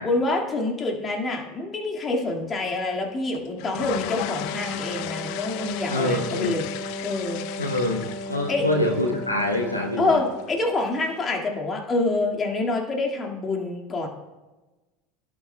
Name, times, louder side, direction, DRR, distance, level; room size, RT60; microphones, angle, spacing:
voice 1, 0.0-6.6 7.0-7.4 8.5-8.7 10.0-14.1, left 2 dB, 25° left, 1 dB, 1.9 m, -26 dB
sound 1, 3.3-11.4, left 13 dB, 55° left, 0.5 m, -37 dB
Wind instrument woodwind instrument, 3.7-10.5, left 1 dB, 45° right, 1.3 m, -35 dB
voice 2, 5.9-6.6 7.6-10.2, left 1 dB, 90° left, 2 dB, 0.9 m, -25 dB
16.5 x 8.5 x 2.2 m, 1.1 s
figure-of-eight pair, 75°, 0 cm